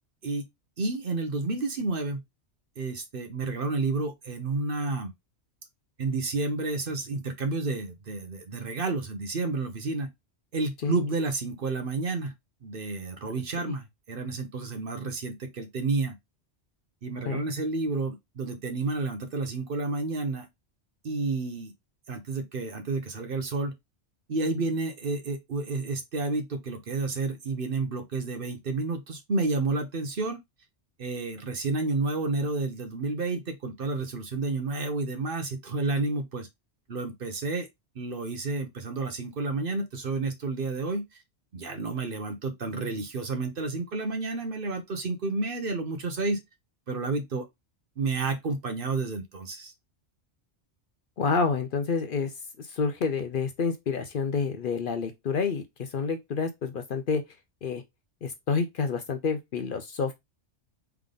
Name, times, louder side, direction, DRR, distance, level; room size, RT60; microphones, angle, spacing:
voice 1, 0.8-2.2 2.8-5.1 6.0-10.1 10.5-12.3 12.6-16.1 17.0-20.5 21.0-21.7 22.1-23.7 24.3-30.4 31.0-36.5 36.9-37.7 37.9-41.0 41.5-46.4 46.9-47.5 48.0-49.7, right 3 dB, 55° right, 1.0 m, -30 dB
voice 2, 51.2-52.3 52.6-57.2 57.6-57.8 58.2-60.1, left 5 dB, 55° left, 0.7 m, -28 dB
3.6 x 3.4 x 3.7 m
omnidirectional pair, 1.2 m